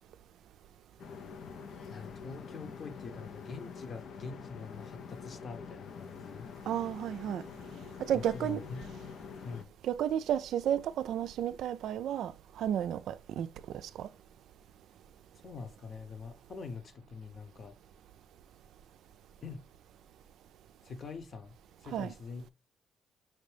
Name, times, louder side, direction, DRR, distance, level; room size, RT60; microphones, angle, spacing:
sound 1, 1.0-9.6, left 6 dB, 65° left, 0.5 m, -46 dB
voice 1, 1.9-6.5 8.1-8.8 9.4-9.7 15.4-17.8 19.4-19.6 20.8-22.5, left 5 dB, 45° left, 1.0 m, -44 dB
voice 2, 6.7-7.4 8.1-8.6 9.8-12.3 12.6-13.5 14.0-14.1 21.9-22.1, right 10 dB, 75° right, 0.3 m, -32 dB
5.9 x 2.7 x 3.3 m
cardioid pair, 90°, 0 cm